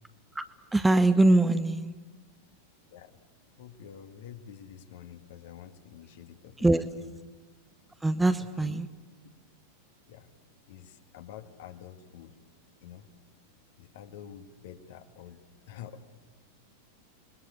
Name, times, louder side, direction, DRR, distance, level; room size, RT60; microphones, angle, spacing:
voice 1, 0.7-2.0 6.6-6.9 8.0-8.9, right 2 dB, 5° right, 11 dB, 0.9 m, -23 dB
voice 2, 3.6-6.7 7.0-7.1 8.4-8.8 10.1-10.3 10.7-12.4 12.8-13.1 13.8-16.1, left 9 dB, 55° left, 7 dB, 2.1 m, -48 dB
29.0 x 21.0 x 8.4 m, 1.3 s
figure-of-eight pair, 90°, 0 cm